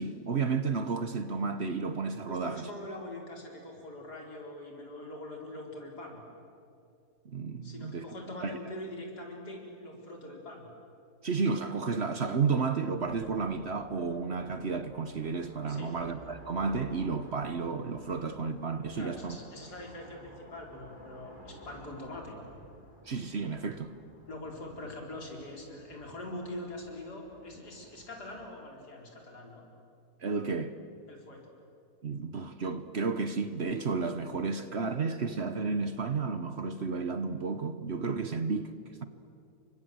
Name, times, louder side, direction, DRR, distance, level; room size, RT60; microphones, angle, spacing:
voice 1, 0.0-2.7 7.2-8.1 8.4-8.6 11.2-19.4 23.1-23.9 30.2-30.7 32.0-38.7, right 4 dB, 45° right, 1.1 m, -32 dB
voice 2, 2.3-6.2 7.6-10.7 15.7-16.0 18.9-22.4 24.3-29.6 31.1-31.4, left 1 dB, 80° left, 5.0 m, -43 dB
sound 1, 13.0-28.5, equal, 30° left, 3.6 m, -53 dB
29.5 x 25.0 x 7.9 m
omnidirectional pair, 1.7 m